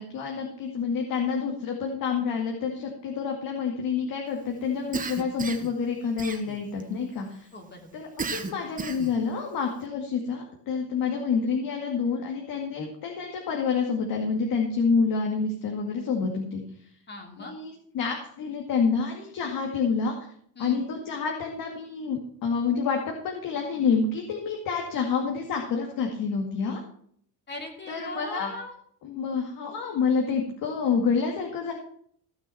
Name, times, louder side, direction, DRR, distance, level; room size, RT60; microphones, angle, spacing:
voice 1, 0.0-7.5 7.9-16.6 17.4-20.3 20.6-26.8 27.9-28.5 29.0-31.7, left 5 dB, 60° left, 1 dB, 2.2 m, -28 dB
Cough, 4.9-5.7 6.2-6.8 8.2-9.2, right 5 dB, 20° right, 1.3 m, -33 dB
voice 2, 7.5-7.9 17.1-17.5 20.6-20.8 27.5-28.7, left 1 dB, 25° left, 2 dB, 3.0 m, -39 dB
15.5 x 6.2 x 5.7 m, 0.63 s
cardioid pair, 130°, 39 cm